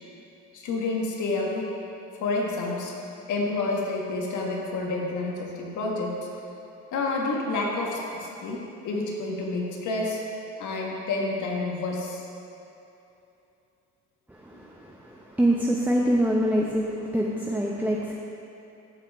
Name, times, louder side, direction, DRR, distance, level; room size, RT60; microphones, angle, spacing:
voice 1, 0.5-1.7 2.2-2.9 3.3-6.2 6.9-10.2 10.6-12.2, left 3 dB, 70° left, -2 dB, 1.6 m, -29 dB
voice 2, 14.3-18.1, equal, 5° right, -3 dB, 0.8 m, -25 dB
14.5 x 5.6 x 3.6 m, 2.8 s
cardioid pair, 80°, 31 cm